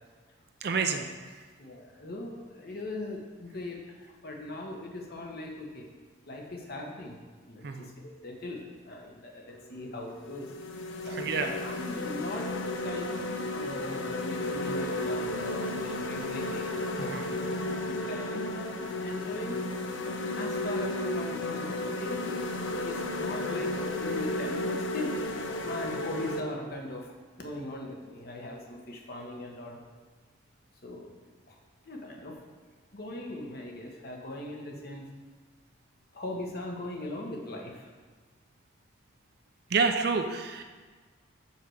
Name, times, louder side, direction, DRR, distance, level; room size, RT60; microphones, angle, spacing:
voice 1, 0.6-1.0 7.6-7.9 11.1-11.5 17.0-17.2 39.7-40.6, right 4 dB, 55° right, 6 dB, 0.5 m, -28 dB
voice 2, 1.6-5.9 6.2-7.2 7.5-12.5 12.8-17.2 17.6-19.6 20.3-22.3 22.8-27.1 27.4-29.8 30.8-31.1 31.5-31.6 31.8-32.4 32.9-35.1 36.1-37.9, left 2 dB, 50° left, 0 dB, 1.1 m, -40 dB
sound 1, 9.5-9.7 10.2-26.4, left 1 dB, 75° left, 0.6 m, -33 dB
5.6 x 4.6 x 6.4 m, 1.5 s
head